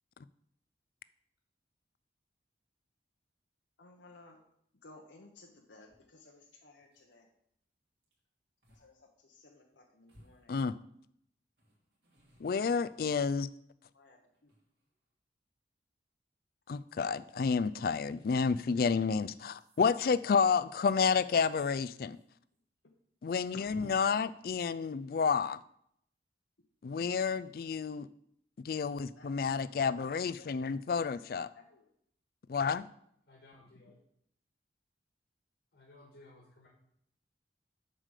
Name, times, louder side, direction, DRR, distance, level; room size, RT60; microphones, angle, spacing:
voice 1, 3.8-4.4 4.8-7.3 8.7-10.6 13.9-14.5 29.2-29.3 29.9-31.9 33.9-34.0, left 2 dB, 90° left, 1 dB, 1.1 m, -58 dB
sound 1, 5.9-6.0 6.5-6.6 6.8-7.1 8.0-8.2 8.6-8.9 9.2-9.3 10.1-11.0 11.6-13.8 14.3-15.1 16.8-17.0 18.3-18.7 19.4-22.2 22.5-22.6 22.9-23.0 23.6-23.9, equal, 65° right, 3.0 m, -60 dB
voice 2, 12.4-13.5 16.7-22.2 23.2-25.6 26.8-28.1 28.6-31.5 32.5-32.9, left 5 dB, 55° left, 16 dB, 0.3 m, -30 dB
voice 3, 33.3-34.0 35.7-36.7, left 2 dB, 75° left, -2 dB, 1.8 m, -58 dB
7.5 x 5.0 x 6.5 m, 0.72 s
head